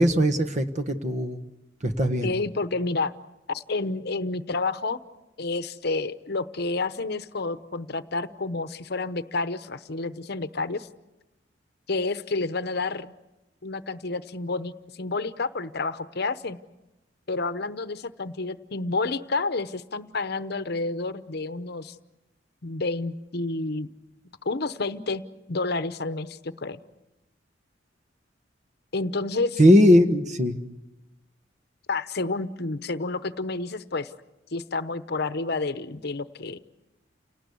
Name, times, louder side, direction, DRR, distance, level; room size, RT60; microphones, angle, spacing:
voice 1, 0.0-1.4 1.8-2.3 29.6-30.6, equal, 40° right, 8 dB, 1.5 m, -19 dB
voice 2, 2.2-3.1 3.5-5.0 5.4-10.9 11.9-13.1 13.6-16.6 17.3-22.0 22.6-23.9 24.4-26.8 28.9-29.6 31.9-34.1 34.5-36.6, left 3 dB, 60° left, 12 dB, 0.9 m, -29 dB
29.0 x 18.5 x 8.4 m, 1.0 s
head